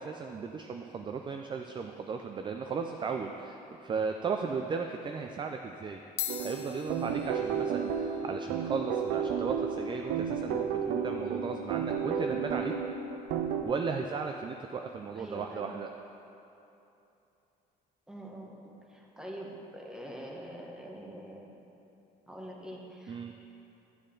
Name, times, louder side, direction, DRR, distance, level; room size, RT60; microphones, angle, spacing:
voice 1, 0.0-6.0 6.4-12.7 13.6-15.9 23.1-23.3, right 5 dB, 30° right, 5 dB, 0.4 m, -36 dB
sound 1, 4.6-4.8 5.7-5.8 6.0-14.7, left 11 dB, 85° left, 0.7 m, -46 dB
sound 2, 6.3-13.6, right 7 dB, 85° right, 0.6 m, -32 dB
voice 2, 15.2-15.7 18.1-21.7 22.3-23.3, right 1 dB, 5° right, -2 dB, 1.3 m, -45 dB
10.5 x 6.5 x 3.8 m, 2.9 s
cardioid pair, 110°, 17 cm